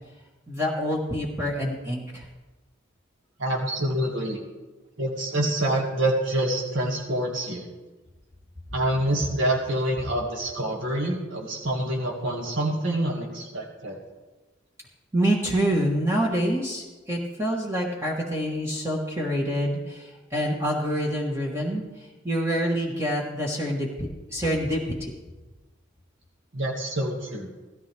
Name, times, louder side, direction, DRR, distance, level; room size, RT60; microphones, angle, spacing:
voice 1, 0.5-2.2 15.1-21.8 22.2-25.1, equal, 15° right, -2 dB, 1.4 m, -26 dB
voice 2, 3.4-4.4 5.0-7.7 8.7-14.0 26.5-27.5, right 1 dB, 70° right, -1 dB, 2.0 m, -26 dB
16.5 x 13.5 x 3.4 m, 1.2 s
head